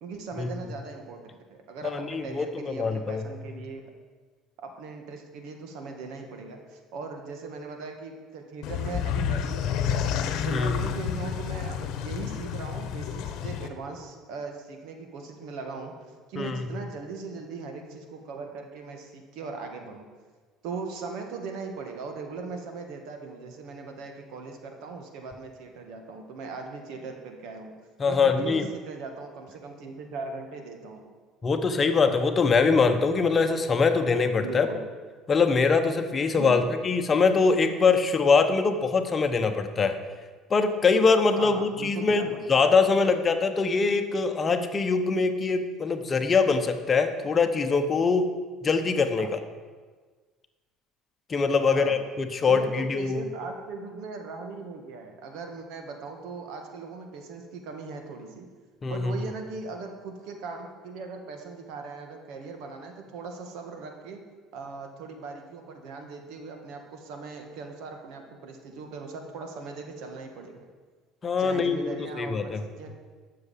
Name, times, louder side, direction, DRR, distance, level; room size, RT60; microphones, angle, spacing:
voice 1, 0.0-3.8 4.6-10.1 10.4-15.9 16.3-20.1 20.6-27.7 28.0-31.1 34.4-34.8 36.4-36.7 41.4-42.6 49.2-49.3 51.7-52.0 52.5-58.5 58.9-64.2 64.5-70.6 71.4-72.9, right 4 dB, 75° right, 4 dB, 2.0 m, -39 dB
voice 2, 1.9-3.3 10.5-10.7 16.4-16.6 28.0-28.7 31.4-34.7 35.3-40.0 40.5-48.3 48.6-49.3 51.3-53.2 58.8-59.2 71.2-72.6, left 4 dB, 30° left, 8 dB, 1.0 m, -23 dB
sound 1, 8.6-13.7, left 8 dB, 65° left, 1.0 m, -30 dB
12.0 x 6.8 x 7.4 m, 1.4 s
cardioid pair, 115°, 0 cm